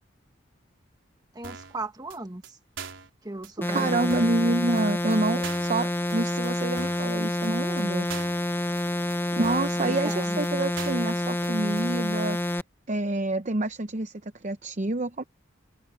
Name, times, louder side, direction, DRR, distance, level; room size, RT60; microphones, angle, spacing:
voice 1, 1.3-2.6 3.2-4.1 9.8-10.4, right 2 dB, 20° right, 1.4 m, -37 dB
sound 1, 1.4-1.8 2.1-2.2 2.4-2.5 2.8-3.1 3.4-3.5 3.8-3.9 4.1-4.4 4.8-4.9 5.1-5.2 5.4-5.8 6.1-6.2 6.4-6.5 6.8-7.1 7.4-7.5 7.8-7.9 8.1-8.4 8.8-8.9 9.1-9.2 9.4-9.8 10.1-10.2 10.4-10.5 10.8-11.1 11.4-11.5 11.8-11.9, right 6 dB, 85° right, 4.2 m, -41 dB
sound 2, 3.6-12.6, left 1 dB, 10° left, 0.7 m, -28 dB
voice 2, 3.6-8.1 9.4-12.4 12.9-15.2, right 2 dB, 40° right, 0.7 m, -27 dB
open air
head